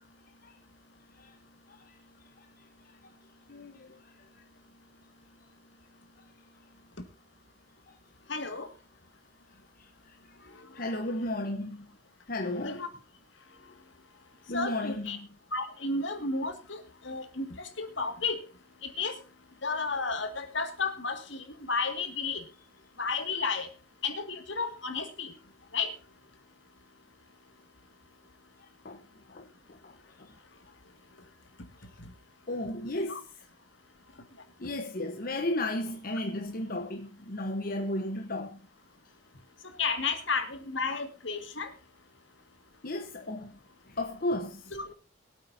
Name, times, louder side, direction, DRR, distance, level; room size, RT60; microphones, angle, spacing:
voice 1, 3.5-4.0 9.8-10.2 10.7-11.8 12.3-12.8 14.5-15.3 28.6-29.0 29.3-29.5 29.8-30.3 32.5-33.4 34.6-38.6 42.8-43.5 43.9-44.7, left 1 dB, 45° left, 1.1 m, -34 dB
voice 2, 8.3-8.7 12.6-12.9 14.5-15.2 15.5-18.4 18.8-19.2 19.6-22.4 23.0-23.7 24.0-25.3 25.7-25.9 33.1-33.2 39.8-41.7 44.7-44.9, left 4 dB, 65° left, 2.1 m, -32 dB
22.5 x 8.5 x 2.7 m
head